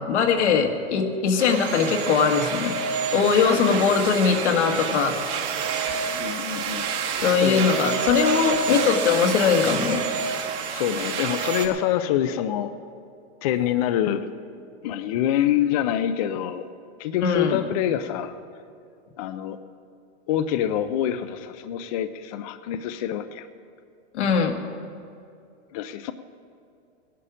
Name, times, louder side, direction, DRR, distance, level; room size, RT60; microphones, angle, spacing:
voice 1, 0.0-2.8 3.1-5.1 7.2-10.0 17.2-17.6 24.1-24.5, left 6 dB, 80° left, 3 dB, 1.7 m, -21 dB
sound 1, 1.4-11.7, right 6 dB, 40° right, 1.3 m, -28 dB
voice 2, 3.5-3.9 6.2-6.9 7.4-7.7 10.7-12.7 13.4-14.2 14.8-16.6 17.0-18.3 19.2-19.6 20.3-23.5 25.7-26.1, left 10 dB, 35° left, 10 dB, 0.4 m, -26 dB
17.5 x 11.0 x 5.0 m, 2.5 s
supercardioid pair, 160°, 34 cm